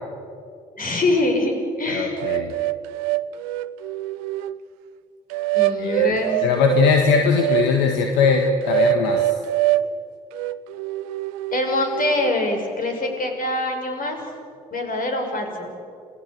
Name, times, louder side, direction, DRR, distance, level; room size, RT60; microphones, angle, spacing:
voice 1, 0.8-1.5 1.8-2.2 5.5-6.4 11.5-14.2 14.7-15.7, left 2 dB, 50° left, 3 dB, 6.0 m, -24 dB
voice 2, 1.9-2.5 5.8-9.3, left 6 dB, 75° left, 4 dB, 1.7 m, -20 dB
sound 1, 2.2-4.6 5.3-7.7 8.2-9.9 10.3-12.4, right 15 dB, 80° right, 0.6 m, -24 dB
27.5 x 18.0 x 8.1 m, 2.4 s
hypercardioid pair, 45°, 19 cm